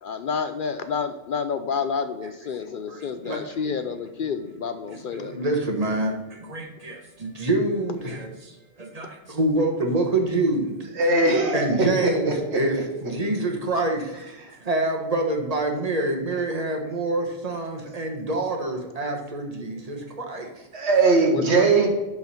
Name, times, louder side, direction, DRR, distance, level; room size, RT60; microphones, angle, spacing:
voice 1, 0.0-5.3 21.2-21.9, left 6 dB, 60° left, 9 dB, 0.6 m, -29 dB
voice 2, 2.6-3.4 5.1-10.8 11.5-14.3 14.6-20.5, right 2 dB, 35° right, 2 dB, 1.3 m, -26 dB
voice 3, 11.0-12.6 20.7-21.9, right 3 dB, 85° right, 1 dB, 1.7 m, -20 dB
11.5 x 3.9 x 4.2 m, 1.1 s
omnidirectional pair, 1.1 m